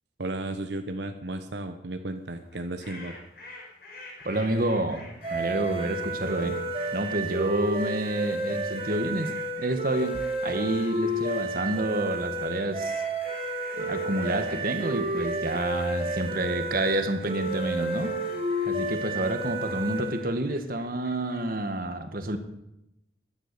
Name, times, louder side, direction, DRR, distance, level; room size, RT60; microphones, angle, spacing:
voice 1, 0.2-3.1, right 2 dB, 80° right, 7 dB, 1.1 m, -34 dB
sound 1, 2.4-21.5, left 2 dB, 55° left, 4.6 m, -49 dB
voice 2, 4.2-5.0 5.3-6.6 6.9-9.3 9.6-12.9 13.8-18.1 18.7-22.4, right 1 dB, 50° right, 8 dB, 1.6 m, -29 dB
sound 2, 5.2-20.3, right 1 dB, 30° right, 3.3 m, -31 dB
14.5 x 11.5 x 6.9 m, 0.86 s
head